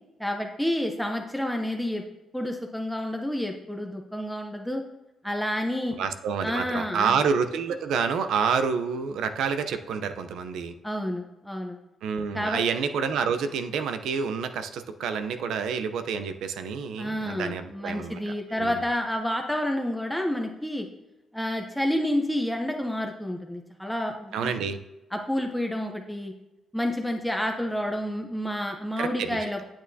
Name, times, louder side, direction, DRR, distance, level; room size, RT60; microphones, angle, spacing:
voice 1, 0.2-2.0 2.3-4.8 5.2-6.0 6.4-7.2 10.8-11.8 12.3-12.6 17.0-20.9 21.3-24.5 25.1-26.3 26.7-29.6, left 1 dB, ahead, 2 dB, 0.7 m, -29 dB
voice 2, 6.0-10.7 12.0-18.8 24.3-24.8 29.0-29.4, right 6 dB, 85° right, 9 dB, 0.6 m, -28 dB
8.7 x 8.5 x 2.7 m, 1.0 s
cardioid pair, 105°, 0 cm